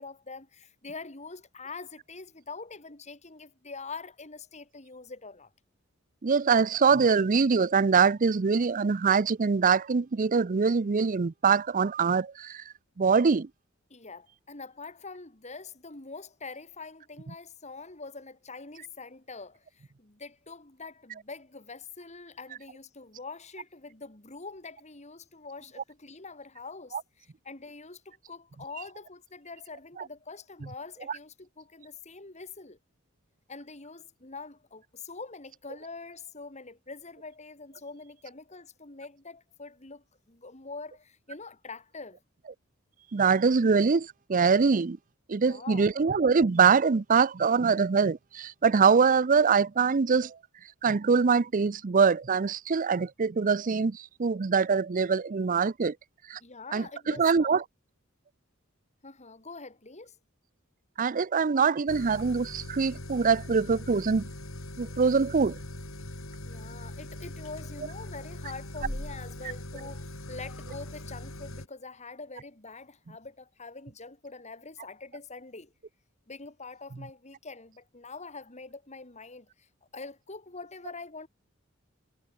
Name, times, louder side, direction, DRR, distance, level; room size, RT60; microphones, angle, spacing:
voice 1, 0.0-5.5 13.9-32.8 33.5-42.2 45.4-45.9 56.4-57.6 59.0-60.2 66.4-75.7 76.3-81.3, left 4 dB, 35° left, 2.9 m, -44 dB
voice 2, 6.2-12.6 13.0-13.5 43.1-45.0 45.3-50.4 50.8-55.9 56.3-56.4 56.7-57.6 61.0-64.3 64.8-65.6, right 5 dB, 40° right, 0.5 m, -24 dB
sound 1, 61.9-71.7, left 1 dB, 75° left, 5.5 m, -41 dB
head